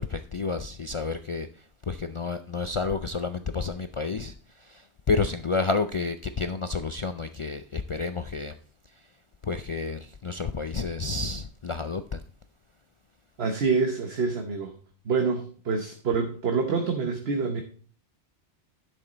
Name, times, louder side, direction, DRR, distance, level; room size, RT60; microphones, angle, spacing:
voice 1, 0.0-1.5 1.9-4.3 4.7-4.8 5.1-8.5 9.4-12.2, left 4 dB, 55° left, 0.3 m, -30 dB
voice 2, 13.4-14.7 15.0-17.6, right 4 dB, 65° right, 1.3 m, -26 dB
11.0 x 6.4 x 4.0 m
omnidirectional pair, 1.2 m